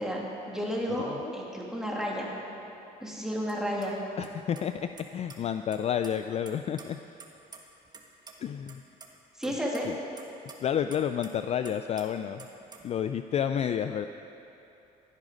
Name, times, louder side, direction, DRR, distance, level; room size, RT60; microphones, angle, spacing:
voice 1, 0.0-2.3 3.0-4.0 9.4-9.9, equal, 5° right, -3 dB, 2.6 m, -32 dB
voice 2, 1.0-1.3 4.2-7.0 8.4-8.8 9.4-9.6 9.8-10.0 10.6-12.5 12.8-14.1, left 9 dB, 40° left, 9 dB, 0.4 m, -30 dB
sound 1, 3.5-3.6 3.8-3.9 4.2-4.3 4.6-5.4 5.7-6.1 6.5-8.0 8.3-8.4 8.7-9.1 9.4-11.4 11.6-12.1 12.4-12.9, right 4 dB, 25° right, 1.4 m, -48 dB
16.0 x 10.5 x 5.1 m, 2.9 s
cardioid pair, 110°, 17 cm